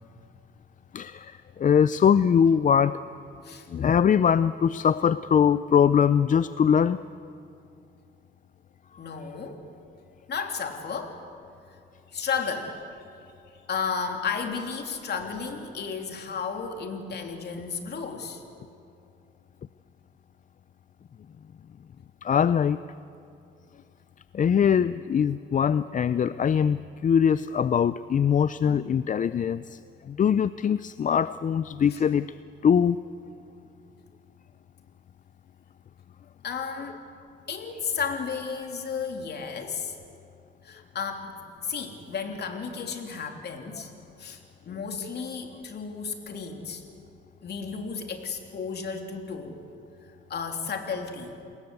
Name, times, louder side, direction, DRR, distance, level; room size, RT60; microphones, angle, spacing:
voice 1, 0.9-3.0 3.7-7.1 22.2-22.8 24.3-32.4 32.6-33.0, left 7 dB, 40° left, 15 dB, 0.5 m, -22 dB
voice 2, 9.0-9.7 10.3-11.2 12.1-12.8 13.7-18.4 28.7-29.0 31.9-32.0 36.4-37.0 37.5-40.0 40.6-43.9 44.2-46.8 47.4-49.6 50.3-51.4, left 5 dB, 55° left, 4 dB, 3.2 m, -33 dB
29.0 x 20.5 x 8.2 m, 2.6 s
cardioid pair, 90°, 20 cm